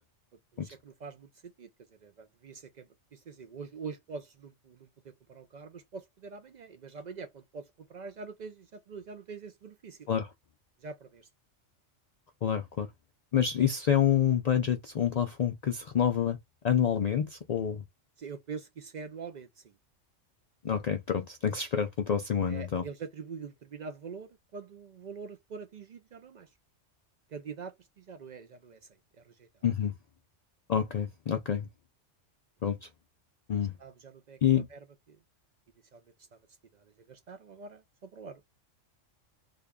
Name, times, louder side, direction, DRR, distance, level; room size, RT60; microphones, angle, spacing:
voice 1, 0.5-10.1 10.8-11.3 18.2-19.8 22.5-26.5 27.3-28.8 29.2-29.5 33.8-34.8 35.1-35.2 35.9-36.0 36.7-38.4, right 5 dB, 70° right, 0.4 m, -45 dB
voice 2, 12.4-12.9 13.3-16.4 16.6-17.8 20.6-22.8 29.6-29.9 30.7-31.7 32.6-32.9 33.5-33.7 34.4-34.7, left 8 dB, 90° left, 0.3 m, -27 dB
3.5 x 2.2 x 3.5 m
omnidirectional pair, 1.3 m